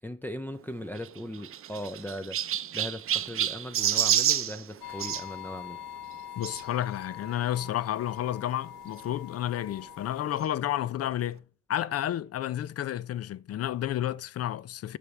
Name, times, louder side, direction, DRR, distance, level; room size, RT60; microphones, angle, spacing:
voice 1, 0.0-5.8, left 1 dB, 5° left, 0.6 m, -39 dB
Chirp tweet, 0.9-5.2 6.4-6.6 7.3-7.4 7.6-7.7 9.0-9.1, right 10 dB, 45° right, 0.6 m, -28 dB
sound 1, 4.8-10.4, left 12 dB, 90° left, 1.2 m, -43 dB
voice 2, 6.4-11.4 11.7-15.0, left 12 dB, 55° left, 0.5 m, -31 dB
12.0 x 5.1 x 3.3 m
cardioid pair, 90°, 30 cm